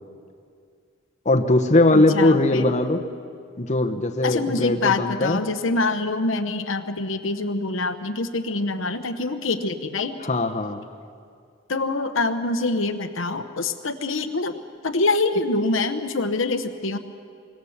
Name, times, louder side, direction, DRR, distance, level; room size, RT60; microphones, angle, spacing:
voice 1, 1.2-3.0 3.6-5.4 10.2-10.8, left 2 dB, 35° left, 5 dB, 1.0 m, -20 dB
voice 2, 1.9-2.7 4.2-10.1 11.7-14.5 14.8-17.0, left 3 dB, 75° left, 7 dB, 1.0 m, -25 dB
24.5 x 16.5 x 7.3 m, 2.3 s
head